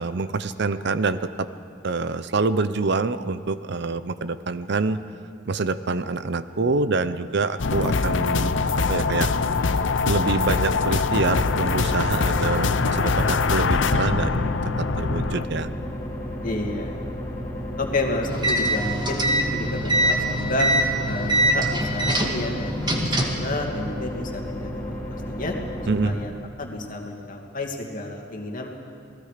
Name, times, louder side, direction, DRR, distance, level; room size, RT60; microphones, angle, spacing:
voice 1, 0.0-1.5 1.8-5.0 5.5-9.3 10.0-15.7 25.9-26.1, right 3 dB, 60° right, 13 dB, 0.7 m, -26 dB
sound 1, 7.6-15.5, left 4 dB, 65° left, 0.6 m, -23 dB
sound 2, 11.1-26.1, equal, 20° left, 4.3 m, -33 dB
voice 2, 16.4-16.9 17.8-20.7 21.0-24.9 25.3-25.5 26.0-26.3 26.6-28.7, left 2 dB, 45° left, 1 dB, 2.4 m, -30 dB
sound 3, 18.3-23.5, right 1 dB, 20° right, 1.9 m, -23 dB
28.0 x 18.5 x 5.0 m, 2.4 s
head